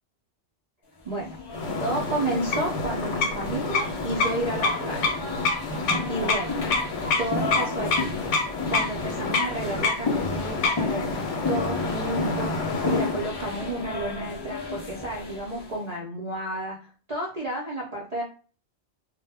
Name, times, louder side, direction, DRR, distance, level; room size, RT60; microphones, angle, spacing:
voice 1, 1.0-1.4 1.8-5.2 6.1-6.6 7.2-8.1 8.7-18.2, right 2 dB, 45° right, -4 dB, 0.5 m, -31 dB
sound 1, 1.1-15.8, left 3 dB, 40° left, 0.3 m, -33 dB
sound 2, 1.5-13.3, left 3 dB, 85° left, 0.9 m, -28 dB
2.1 x 2.0 x 3.4 m, 0.38 s
omnidirectional pair, 1.2 m